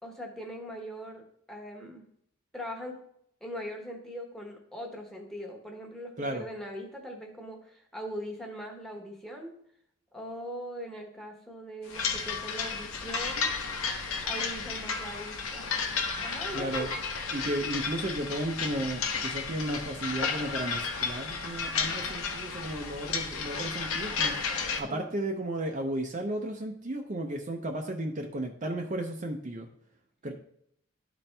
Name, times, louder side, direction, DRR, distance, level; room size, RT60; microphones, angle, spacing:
voice 1, 0.0-2.0 2.5-3.0 3.4-9.5 10.1-13.5 14.2-15.8 16.2-16.9 24.9-25.2 30.2-30.3, equal, ahead, 1 dB, 1.1 m, -41 dB
sound 1, 11.9-24.8, left 5 dB, 75° left, 0.9 m, -33 dB
voice 2, 16.5-16.9 17.3-24.4 24.8-29.7 30.2-30.3, right 1 dB, 35° right, 2 dB, 0.6 m, -34 dB
11.5 x 4.3 x 3.3 m, 0.69 s
head